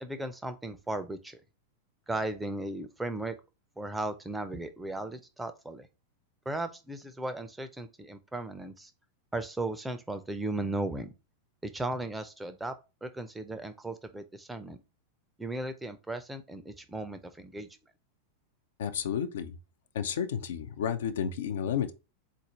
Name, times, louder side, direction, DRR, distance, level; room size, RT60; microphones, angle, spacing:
voice 1, 0.0-1.4 2.1-3.3 3.8-5.9 6.5-8.9 9.3-11.1 11.6-12.7 13.0-14.8 15.4-17.7, right 2 dB, 5° right, 0.5 m, -36 dB
voice 2, 18.8-19.6 19.9-21.9, left 8 dB, 60° left, 0.4 m, -31 dB
4.1 x 2.5 x 4.3 m
figure-of-eight pair, 90°, 0 cm